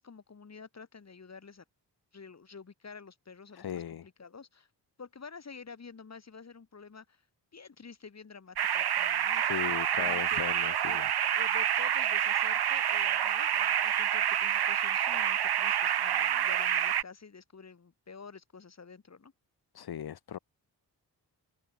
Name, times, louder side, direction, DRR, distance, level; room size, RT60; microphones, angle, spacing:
voice 1, 0.0-1.6 2.1-4.7 5.0-7.3 7.5-9.6 9.9-10.4 10.9-11.0 11.4-19.3, left 5 dB, 40° left, 5.6 m, -49 dB
voice 2, 3.5-4.1 9.3-11.1 19.7-20.4, left 9 dB, 65° left, 1.4 m, -38 dB
sound 1, 8.6-17.0, right 9 dB, 65° right, 1.4 m, -28 dB
open air
wide cardioid pair, 145°, 42 cm